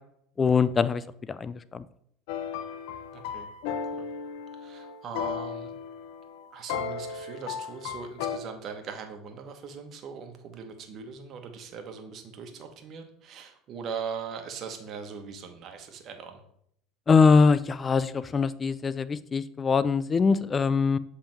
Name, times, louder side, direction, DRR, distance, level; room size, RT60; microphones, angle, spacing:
voice 1, 0.4-1.0 1.3-1.8 17.1-21.0, left 5 dB, 25° left, 16 dB, 0.4 m, -22 dB
sound 1, 2.3-8.4, left 7 dB, 75° left, 0.6 m, -35 dB
voice 2, 3.1-3.5 4.0-4.1 4.5-5.7 6.5-16.4, right 6 dB, 50° right, 6 dB, 1.2 m, -40 dB
7.3 x 3.6 x 4.5 m, 0.69 s
supercardioid pair, 100°, 0 cm